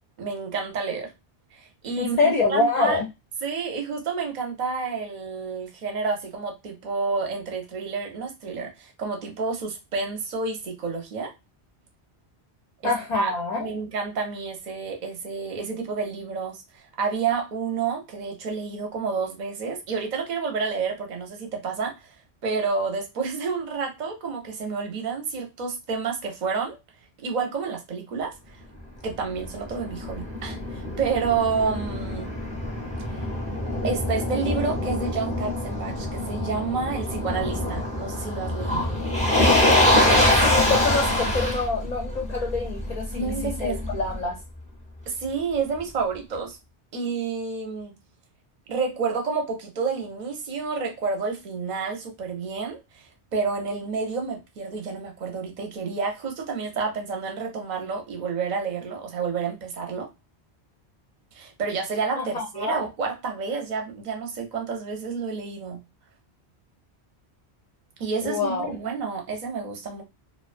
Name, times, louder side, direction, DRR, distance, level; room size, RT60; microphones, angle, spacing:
voice 1, 0.2-1.1 1.5-3.0 3.4-11.3 12.8-13.3 13.6-22.1 22.4-26.8 27.2-28.6 29.0-32.3 33.1-33.3 33.8-38.9 43.1-43.8 45.1-46.6 46.9-47.9 48.7-60.1 61.3-65.8 68.0-70.0, right 5 dB, 50° right, 0.7 m, -29 dB
voice 2, 2.0-3.0 12.8-13.7 39.9-43.3 43.6-44.4 62.2-62.8 68.2-68.8, left 3 dB, 50° left, 0.5 m, -26 dB
Motor vehicle (road), 29.1-44.2, left 1 dB, 10° left, 0.6 m, -25 dB
2.3 x 2.2 x 2.4 m
omnidirectional pair, 1.1 m